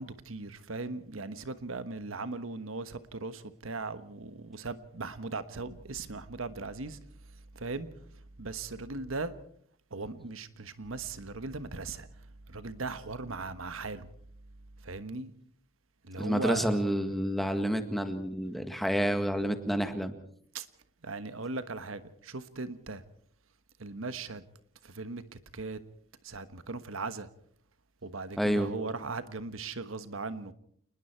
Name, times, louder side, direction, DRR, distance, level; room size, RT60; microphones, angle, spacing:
voice 1, 0.0-7.0 7.3-9.3 9.9-14.1 14.8-15.3 16.0-16.8 20.5-20.7 21.0-23.0 23.8-24.4 24.8-25.8 26.2-27.3 28.0-30.5, right 3 dB, 80° right, 1.3 m, -38 dB
voice 2, 16.2-20.1 28.4-28.7, equal, ahead, 1.8 m, -29 dB
28.5 x 20.0 x 4.6 m
head